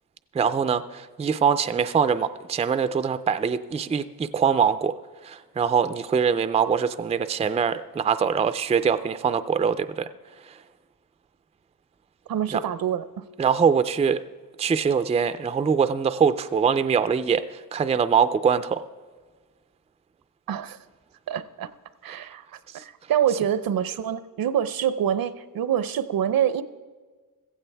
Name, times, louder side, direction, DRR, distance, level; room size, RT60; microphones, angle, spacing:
voice 1, 0.3-4.9 5.2-10.1 10.4-10.6 12.5-12.6 13.4-14.2 14.6-18.8, right 6 dB, 20° right, 12 dB, 0.3 m, -23 dB
voice 2, 12.3-13.2 20.5-20.8 21.3-21.7 22.0-26.6, right 9 dB, 75° right, 14 dB, 0.7 m, -26 dB
15.5 x 15.5 x 3.4 m, 1.4 s
wide cardioid pair, 160°, 35 cm